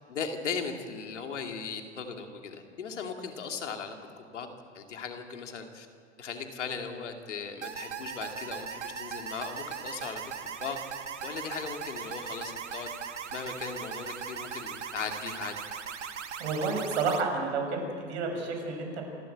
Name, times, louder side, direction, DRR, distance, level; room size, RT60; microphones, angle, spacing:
voice 1, 0.1-4.5 4.7-5.9 6.2-10.8 11.2-12.9 13.3-15.5, left 5 dB, 85° left, 4 dB, 2.7 m, -38 dB
sound 1, 7.6-17.2, right 7 dB, 90° right, 1.6 m, -39 dB
voice 2, 16.4-19.0, right 4 dB, 70° right, 3 dB, 6.2 m, -30 dB
28.0 x 13.0 x 8.3 m, 2.2 s
hypercardioid pair, 105°, 35 cm